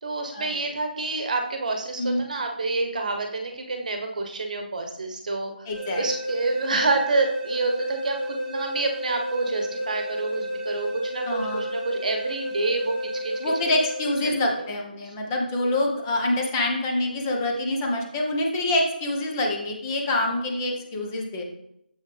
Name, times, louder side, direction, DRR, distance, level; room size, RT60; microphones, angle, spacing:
voice 1, 0.0-5.7 6.0-13.0 13.2-13.5 14.2-14.7, right 3 dB, 45° right, 4 dB, 1.2 m, -28 dB
voice 2, 5.7-6.0 11.2-11.7 13.4-21.4, left 1 dB, 15° left, 0 dB, 1.0 m, -26 dB
sound 1, 5.7-14.7, equal, 10° right, 2.7 m, -32 dB
7.2 x 6.3 x 3.4 m, 0.77 s
figure-of-eight pair, 155°, 6 cm